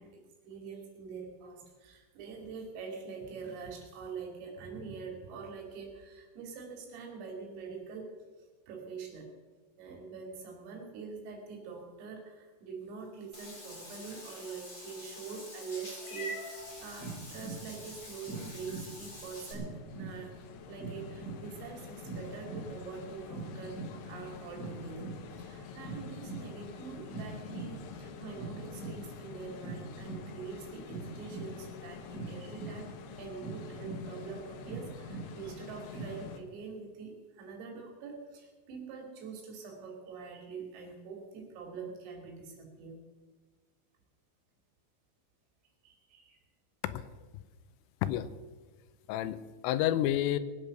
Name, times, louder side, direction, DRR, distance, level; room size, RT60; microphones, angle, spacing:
voice 1, 0.0-8.1 8.7-9.3 9.8-20.4 20.7-43.0 45.8-46.4, right 5 dB, 85° right, 1 dB, 5.3 m, -44 dB
Meow / Water / Bathtub (filling or washing), 13.3-19.5, left 1 dB, 20° left, 2.3 m, -46 dB
sound 1, 16.6-36.3, right 3 dB, 5° left, 2.9 m, -44 dB
sound 2, 18.6-36.4, left 7 dB, 70° left, 2.7 m, -48 dB
voice 2, 49.1-50.4, left 12 dB, 90° left, 13 dB, 3.3 m, -30 dB
21.0 x 8.9 x 6.5 m, 1.3 s
omnidirectional pair, 5.8 m